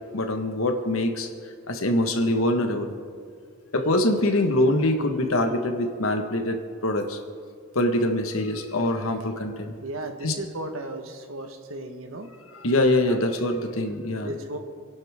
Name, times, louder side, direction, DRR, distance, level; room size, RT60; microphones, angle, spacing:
voice 1, 0.1-1.3 1.7-2.9 3.7-7.2 7.7-9.7 10.2-10.3 12.6-14.3, left 1 dB, 75° left, 5 dB, 1.6 m, -24 dB
voice 2, 9.8-12.3 13.0-13.2 14.2-14.6, right 1 dB, 70° right, 5 dB, 1.6 m, -35 dB
27.5 x 11.5 x 3.7 m, 2.1 s
head